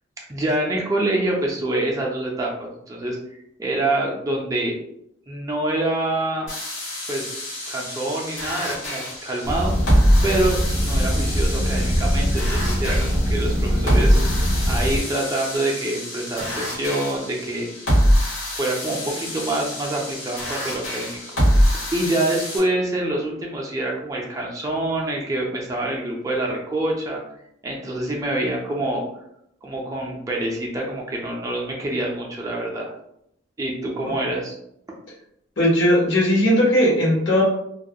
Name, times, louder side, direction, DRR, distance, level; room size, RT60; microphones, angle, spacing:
voice 1, 0.3-3.2 3.6-4.8 5.3-6.5 7.1-7.3 7.7-9.7 10.2-17.7 18.5-21.2 21.5-27.2 27.6-29.0 29.6-32.9 33.6-34.6, right 1 dB, 15° right, -2 dB, 0.4 m, -26 dB
sound 1, 6.5-22.6, equal, 90° left, 1.2 m, -24 dB
sound 2, 9.4-15.0, equal, 40° left, 0.5 m, -22 dB
voice 2, 35.6-37.4, equal, 70° left, -4 dB, 0.8 m, -18 dB
2.3 x 2.1 x 2.7 m, 0.75 s
head